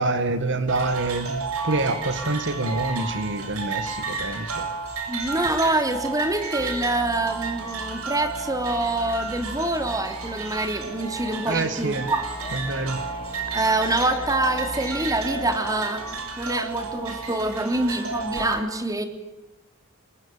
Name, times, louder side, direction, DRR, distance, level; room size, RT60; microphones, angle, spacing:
voice 1, 0.0-4.7 11.5-12.1 12.5-13.0, right 2 dB, 55° right, 11 dB, 1.9 m, -26 dB
sound 1, 0.7-18.5, right 4 dB, 85° right, 6.9 m, -32 dB
sound 2, 4.8-16.2, left 2 dB, 25° left, 6.1 m, -46 dB
voice 2, 5.1-12.2 13.5-16.0 16.4-19.0, right 2 dB, 15° right, 7 dB, 3.2 m, -25 dB
sound 3, 6.6-11.4 12.0-15.6, left 1 dB, 65° left, 3.8 m, -42 dB
27.5 x 22.0 x 8.8 m, 0.97 s
head